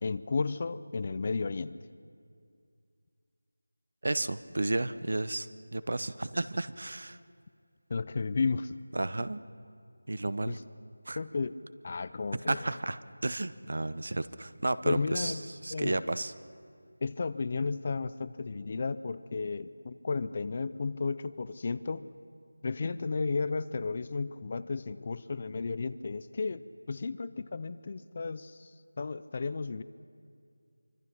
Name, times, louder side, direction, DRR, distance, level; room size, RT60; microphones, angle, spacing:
voice 1, 0.0-1.8 7.9-8.8 10.5-10.6 11.2-11.6 11.8-12.7 14.8-15.4 15.7-16.0 17.0-22.1 22.6-28.7 29.0-29.8, left 4 dB, 30° left, 15 dB, 0.5 m, -33 dB
voice 2, 4.0-7.2 8.9-9.4 10.1-10.6 11.1-11.2 12.5-16.3, right 2 dB, 55° right, 14 dB, 0.9 m, -32 dB
25.0 x 24.5 x 6.0 m, 2.3 s
figure-of-eight pair, 175°, 0 cm